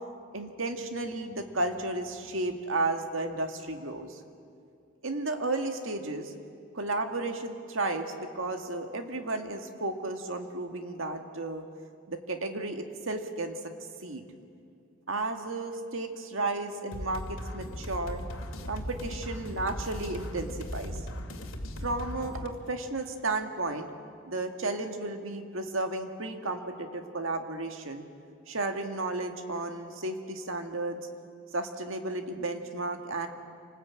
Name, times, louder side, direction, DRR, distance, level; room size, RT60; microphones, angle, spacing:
voice 1, 0.3-4.2 5.0-6.3 6.7-11.6 12.1-13.6 14.0-14.2 15.1-18.2 18.7-21.0 21.8-23.9 24.3-28.1 28.5-31.0 31.5-33.3, right 2 dB, 70° right, 5 dB, 2.0 m, -33 dB
sound 1, 16.9-22.5, equal, 75° left, 2.3 m, -38 dB
27.0 x 19.5 x 8.7 m, 2.4 s
head